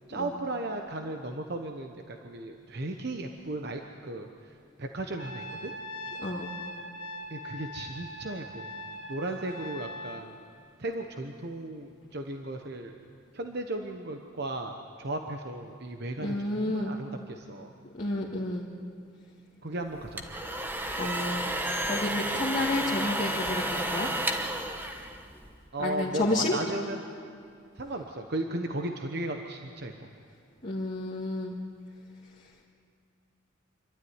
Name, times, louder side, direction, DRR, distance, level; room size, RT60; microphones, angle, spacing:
voice 1, 0.1-5.7 7.3-8.7 9.1-10.4 10.8-12.9 13.3-17.7 19.6-20.3 25.7-27.0 27.8-30.1, right 2 dB, 55° right, 4 dB, 1.0 m, -35 dB
Trumpet, 5.2-10.2, left 1 dB, 75° left, 1.7 m, -41 dB
voice 2, 6.2-6.5 16.2-16.9 17.9-18.7 21.0-21.5 21.8-24.1 25.8-26.6 30.6-31.6, left 2 dB, 40° left, -4 dB, 1.9 m, -30 dB
sound 1, 19.9-25.7, right 1 dB, 10° right, 1.1 m, -32 dB
26.5 x 12.5 x 9.6 m, 2.3 s
head